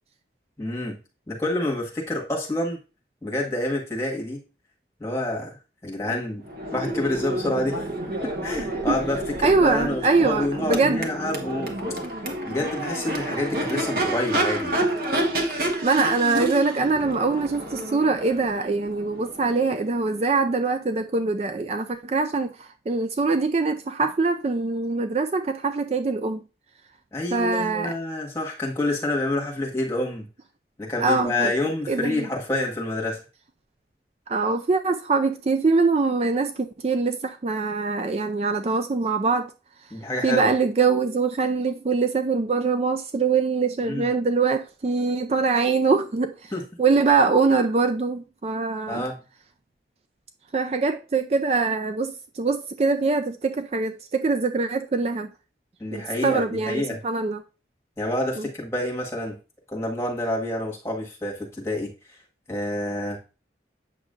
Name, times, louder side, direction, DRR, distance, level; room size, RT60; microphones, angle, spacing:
voice 1, 0.6-1.0 1.3-2.8 3.2-4.4 5.0-5.6 5.8-6.4 6.7-7.8 8.2-11.8 12.4-14.7 27.1-30.3 30.8-33.2 39.9-40.5 43.8-44.1 46.5-46.6 48.9-49.2 55.8-57.0 58.0-59.4 59.7-61.9 62.5-63.2, left 1 dB, 15° left, 1.6 m, -28 dB
Crowd / Race car auto racing / Accelerating revving vroom, 6.4-20.3, right 1 dB, 55° right, 1.2 m, -29 dB
voice 2, 9.4-11.1 15.6-26.4 27.3-27.9 31.0-31.5 31.9-32.3 34.3-39.5 40.2-46.5 46.8-49.0 50.5-55.3 55.9-57.4 58.4-58.5, right 4 dB, 35° right, 0.4 m, -23 dB
8.2 x 6.2 x 2.5 m
head